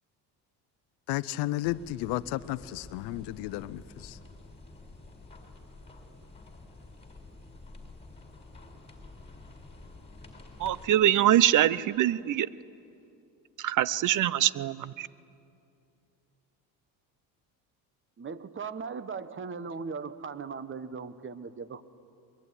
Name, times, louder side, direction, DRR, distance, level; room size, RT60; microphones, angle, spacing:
voice 1, 1.1-4.2, left 16 dB, 75° left, 0.7 m, -33 dB
sound 1, 1.6-10.9, left 2 dB, 15° left, 4.4 m, -49 dB
voice 2, 10.6-12.5 13.6-15.1, right 12 dB, 50° right, 0.7 m, -24 dB
voice 3, 18.2-21.8, right 5 dB, 30° right, 1.2 m, -38 dB
22.5 x 22.0 x 10.0 m
cardioid pair, 100°, 41 cm